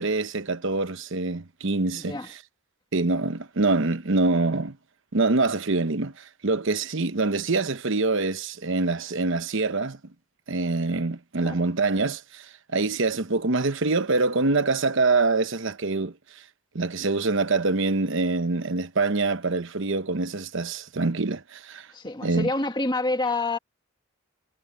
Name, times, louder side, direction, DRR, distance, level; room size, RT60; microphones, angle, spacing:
voice 1, 0.0-2.2 2.9-4.8 5.1-10.0 10.5-16.1 16.7-21.9 22.2-22.5, right 3 dB, 60° right, 1.0 m, -25 dB
voice 2, 1.9-2.3 11.4-11.6 21.9-23.6, left 2 dB, 20° left, 1.9 m, -27 dB
head